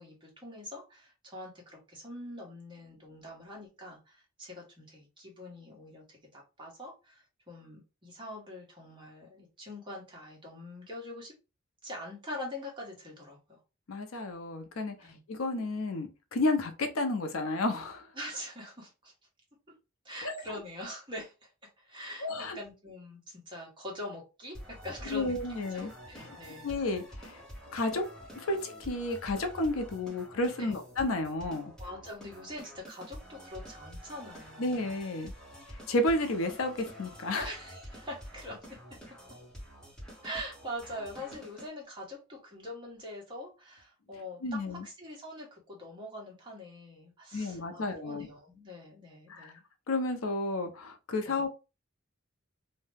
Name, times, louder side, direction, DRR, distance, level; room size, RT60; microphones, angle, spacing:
voice 1, 0.0-11.3 11.8-13.6 15.0-15.2 18.1-19.1 20.0-25.4 25.7-26.7 30.6-30.8 31.8-34.8 37.4-38.8 40.2-49.6 51.2-51.4, left 1 dB, 25° right, 1.1 m, -44 dB
voice 2, 13.9-18.1 20.2-20.6 22.2-22.6 25.1-26.4 26.6-27.4 27.7-28.0 28.3-31.7 34.6-35.3 35.9-37.5 44.4-44.8 47.3-48.3 49.3-49.5 49.9-51.5, left 2 dB, 80° left, 0.6 m, -32 dB
sound 1, 24.5-41.7, equal, 5° left, 1.1 m, -48 dB
2.7 x 2.1 x 3.3 m
head